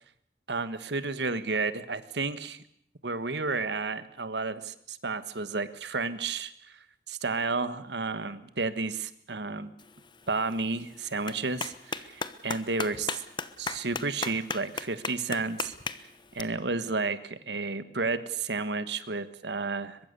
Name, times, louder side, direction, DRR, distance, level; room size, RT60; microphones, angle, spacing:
voice 1, 0.5-2.6 3.0-6.8 7.1-9.7 10.3-13.1 13.6-15.7 16.3-20.0, right 3 dB, 75° right, 13 dB, 1.5 m, -32 dB
Clapping, 9.8-16.4, left 4 dB, 25° left, 1.0 m, -38 dB
23.5 x 22.0 x 6.9 m, 0.66 s
head